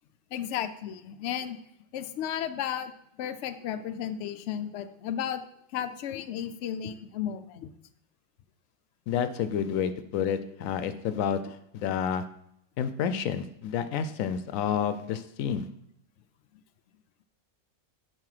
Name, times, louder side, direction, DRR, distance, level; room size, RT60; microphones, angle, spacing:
voice 1, 0.3-1.6 1.9-2.9 3.2-5.4 5.7-7.7, left 9 dB, 70° left, 9 dB, 0.8 m, -34 dB
voice 2, 9.1-11.4 11.7-12.2 12.8-15.7, left 8 dB, 90° left, 12 dB, 1.0 m, -29 dB
9.4 x 5.0 x 4.9 m, 0.75 s
omnidirectional pair, 1.3 m